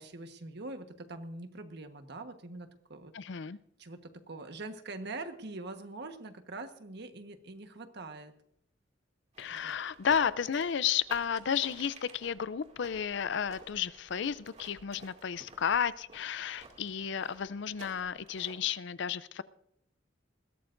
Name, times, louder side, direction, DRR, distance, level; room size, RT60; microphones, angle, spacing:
voice 1, 0.0-3.1 3.8-8.3 9.5-9.8, right 2 dB, 60° right, 7 dB, 1.3 m, -43 dB
voice 2, 3.1-3.6 9.4-19.4, left 7 dB, 65° left, 16 dB, 0.5 m, -32 dB
sound 1, 9.3-18.8, right 3 dB, 35° right, 2.4 m, -54 dB
20.5 x 16.5 x 2.6 m, 0.75 s
head